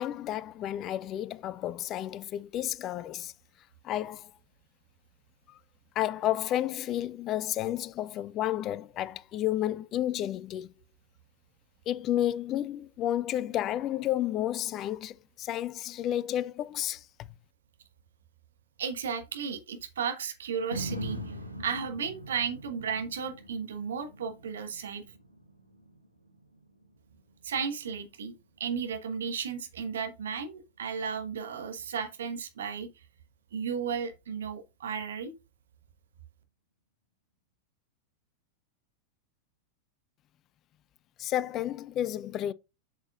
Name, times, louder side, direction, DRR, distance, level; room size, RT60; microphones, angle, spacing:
voice 1, 0.0-3.3 3.8-4.3 6.0-10.7 11.9-17.3 41.2-42.5, left 12 dB, 35° left, 0.4 m, -31 dB
voice 2, 18.8-21.3 21.6-25.0 27.4-28.3 28.6-32.9 33.5-35.3, right 6 dB, 65° right, 1.3 m, -34 dB
sound 1, 20.7-28.9 29.3-29.4, equal, 85° right, 1.1 m, -43 dB
7.8 x 5.9 x 2.4 m
figure-of-eight pair, 90°, 0 cm